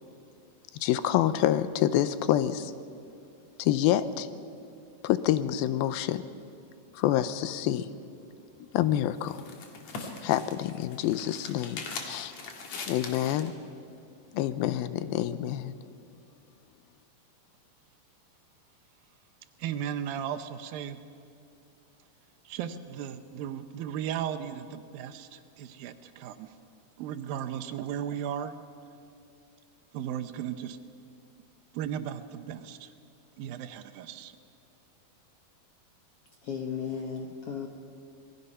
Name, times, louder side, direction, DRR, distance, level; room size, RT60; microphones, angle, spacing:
voice 1, 0.8-2.7 3.6-4.3 5.0-6.2 6.9-7.9 8.6-9.4 10.2-12.3 12.9-13.5 14.3-15.7, left 12 dB, 90° left, 13 dB, 2.5 m, -27 dB
sound 1, 8.7-13.5, left 4 dB, 55° left, 2.8 m, -41 dB
voice 2, 19.6-21.0 22.5-26.6 27.0-28.5 29.9-30.8 31.7-32.9 33.4-34.3, right 9 dB, 80° right, 10 dB, 2.6 m, -36 dB
voice 3, 36.4-37.7, left 6 dB, 70° left, 3 dB, 1.4 m, -35 dB
26.0 x 20.0 x 5.6 m, 2.5 s
omnidirectional pair, 4.2 m